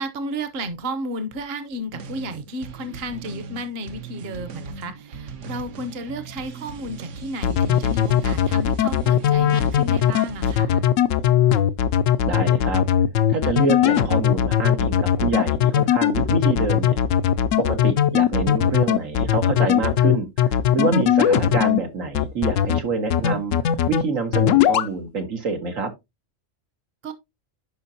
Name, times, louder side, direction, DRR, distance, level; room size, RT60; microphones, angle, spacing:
voice 1, 0.0-10.8 27.0-27.1, right 1 dB, 55° right, 1.1 m, -32 dB
sound 1, 1.9-10.6, right 5 dB, 70° right, 1.1 m, -38 dB
sound 2, 7.4-21.8 22.1-22.8 23.1-24.0 24.3-24.9, left 10 dB, 85° left, 1.0 m, -19 dB
voice 2, 12.3-12.8 13.3-17.0 17.6-25.9, right 4 dB, 90° right, 1.9 m, -26 dB
11.0 x 5.1 x 2.7 m
omnidirectional pair, 1.3 m